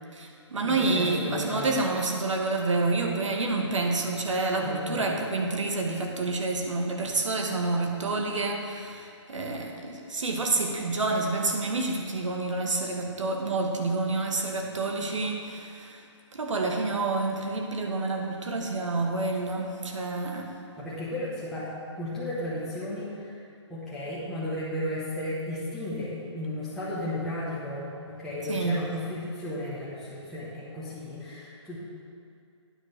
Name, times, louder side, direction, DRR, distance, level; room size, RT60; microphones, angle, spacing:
voice 1, 0.1-16.0 16.3-20.5 28.4-28.8, right 3 dB, 80° right, 2 dB, 1.4 m, -28 dB
voice 2, 0.6-1.7 4.6-5.0 20.8-23.4 23.7-31.8, left 1 dB, ahead, -12 dB, 1.0 m, -34 dB
9.6 x 4.7 x 6.5 m, 2.4 s
hypercardioid pair, 170°, 16 cm